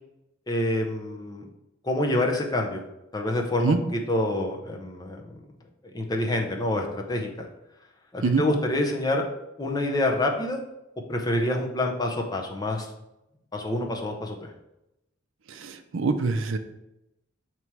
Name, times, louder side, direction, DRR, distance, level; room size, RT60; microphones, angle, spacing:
voice 1, 0.5-1.5 1.8-2.8 3.1-5.4 5.9-7.5 8.1-9.2 9.6-10.6 11.1-12.9 13.5-14.5, left 1 dB, 20° left, 1 dB, 0.6 m, -27 dB
voice 2, 15.5-16.6, right 4 dB, 65° right, 8 dB, 0.5 m, -25 dB
7.0 x 3.0 x 4.6 m, 0.90 s
head